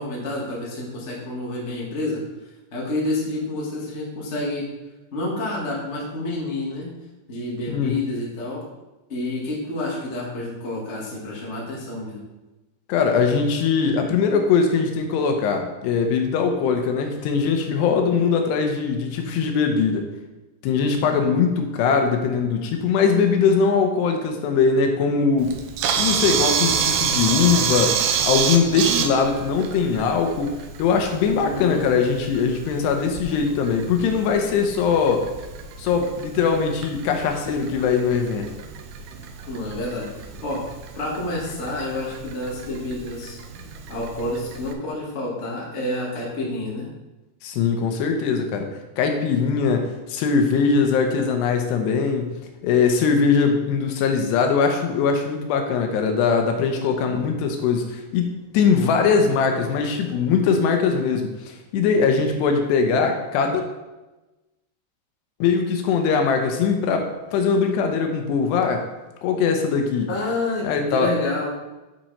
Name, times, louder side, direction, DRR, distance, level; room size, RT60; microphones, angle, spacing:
voice 1, 0.0-2.2 2.7-4.7 5.1-6.9 7.3-8.6 9.1-12.2 31.3-31.9 39.5-43.4 43.9-46.9 70.1-71.5, left 2 dB, 45° left, -4 dB, 0.8 m, -29 dB
voice 2, 7.7-8.0 12.9-20.1 20.6-25.6 26.0-28.0 28.2-30.5 30.8-35.3 35.8-38.5 47.4-48.7 49.0-52.3 52.6-63.6 65.4-68.8 69.2-70.1 70.6-71.1, left 5 dB, 80° left, 4 dB, 2.9 m, -21 dB
Camera, 25.4-44.7, right 7 dB, 85° right, 2.9 m, -29 dB
8.2 x 6.0 x 4.2 m, 1.1 s
omnidirectional pair, 5.0 m